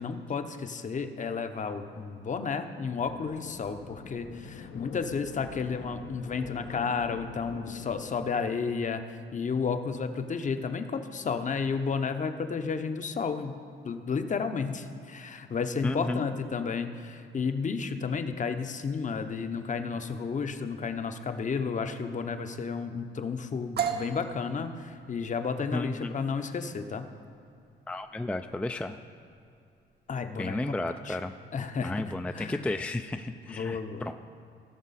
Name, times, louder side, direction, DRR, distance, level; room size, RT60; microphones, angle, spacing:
voice 1, 0.0-9.0 9.3-13.6 13.8-27.0 30.1-30.7 31.1-31.2 31.5-32.7 33.5-34.1, left 5 dB, 40° left, 8 dB, 0.8 m, -32 dB
sound 1, 2.9-8.3, left 6 dB, 75° left, 0.8 m, -45 dB
voice 2, 15.8-16.3 25.7-26.3 27.9-29.0 30.4-31.3 31.8-34.1, left 2 dB, 5° left, 7 dB, 0.3 m, -33 dB
sound 2, 23.8-31.4, right 7 dB, 55° right, 1.0 m, -39 dB
17.5 x 6.1 x 4.2 m, 2.5 s
cardioid pair, 90°, 20 cm